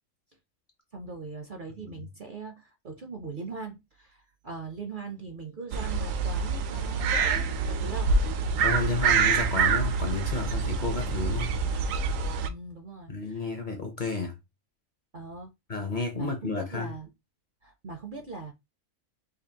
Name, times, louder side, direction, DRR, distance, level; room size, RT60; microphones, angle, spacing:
voice 1, 0.9-8.1 12.5-13.5 15.1-15.5 16.1-17.1 17.6-18.5, right 4 dB, 50° right, 0.6 m, -41 dB
sound 1, 5.7-12.5, right 5 dB, 75° right, 1.0 m, -26 dB
voice 2, 8.6-11.6 13.1-14.4 15.7-16.9, left 4 dB, 45° left, 0.7 m, -31 dB
5.1 x 2.3 x 2.8 m
omnidirectional pair, 1.4 m